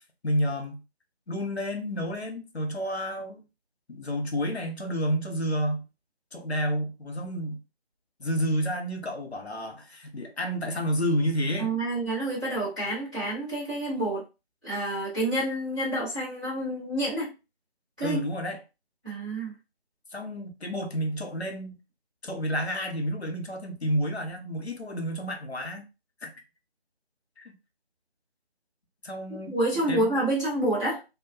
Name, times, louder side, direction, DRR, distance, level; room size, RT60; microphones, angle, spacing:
voice 1, 0.2-0.8 1.3-3.4 3.9-5.8 6.3-7.6 8.2-11.7 18.0-18.6 20.1-21.8 22.2-25.8 26.2-26.3 27.4-27.5 29.0-29.5 29.9-30.1, equal, 85° left, 0.9 m, -30 dB
voice 2, 11.6-14.2 14.6-17.3 18.0-18.2 19.0-19.5 29.5-31.0, right 1 dB, 10° right, 0.9 m, -28 dB
2.8 x 2.1 x 2.5 m
figure-of-eight pair, 160°, 32 cm